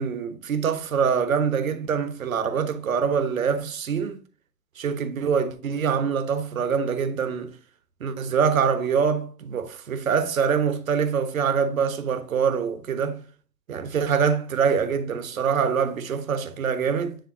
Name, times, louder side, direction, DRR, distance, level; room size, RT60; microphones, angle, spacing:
voice 1, 0.0-4.2 4.8-7.5 8.0-13.2 13.7-17.2, right 6 dB, 55° right, 1.2 m, -24 dB
10.0 x 3.5 x 2.8 m
hypercardioid pair, 150°, 49 cm